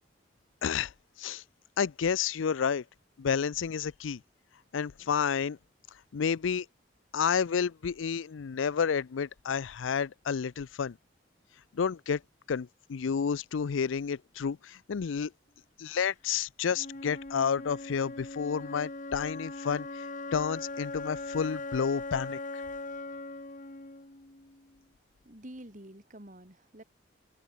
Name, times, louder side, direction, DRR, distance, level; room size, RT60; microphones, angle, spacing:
voice 1, 0.6-0.9 1.2-1.4 1.8-2.8 3.2-4.2 4.7-5.6 6.1-6.7 7.1-11.0 11.7-12.2 12.5-15.3 15.8-19.9 20.3-22.4, left 6 dB, 85° left, 0.5 m, -30 dB
Wind instrument woodwind instrument, 16.7-24.8, left 2 dB, 40° left, 1.7 m, -40 dB
voice 2, 25.2-26.8, right 1 dB, 40° right, 2.9 m, -48 dB
head